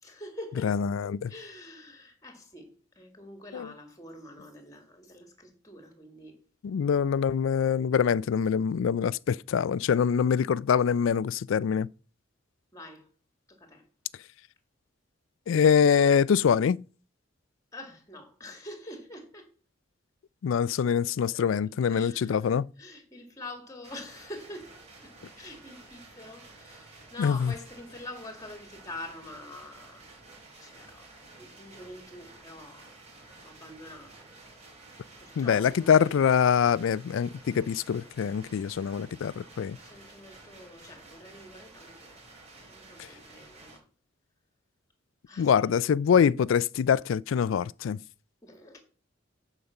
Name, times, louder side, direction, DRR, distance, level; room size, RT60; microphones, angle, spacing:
voice 1, 0.0-0.8 1.3-6.4 12.7-13.1 13.5-13.9 17.7-19.5 21.3-21.5 21.9-24.8 25.0-30.1 30.6-32.9 33.4-34.3 35.2-35.9 39.6-42.2 42.7-43.8 45.3-45.7 48.4-48.8, left 1 dB, 15° left, 1.9 m, -46 dB
voice 2, 0.6-1.3 3.5-3.7 6.6-11.9 15.5-16.8 20.4-22.7 27.2-27.5 35.4-39.8 45.4-48.0, left 7 dB, 70° left, 0.3 m, -24 dB
sound 1, 23.8-43.8, right 3 dB, 35° right, 5.0 m, -52 dB
9.5 x 5.1 x 7.0 m
head